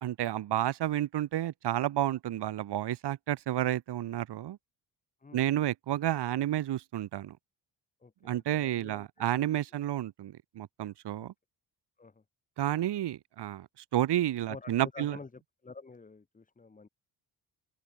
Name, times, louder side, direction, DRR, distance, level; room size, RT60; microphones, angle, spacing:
voice 1, 0.0-4.6 5.3-7.4 8.2-11.3 12.6-13.7 13.9-15.2, right 12 dB, 80° right, 3.7 m, -31 dB
voice 2, 8.0-9.1 11.2-11.3 12.0-12.2 14.5-16.9, left 4 dB, 20° left, 4.7 m, -48 dB
open air
wide cardioid pair, 170°, 40 cm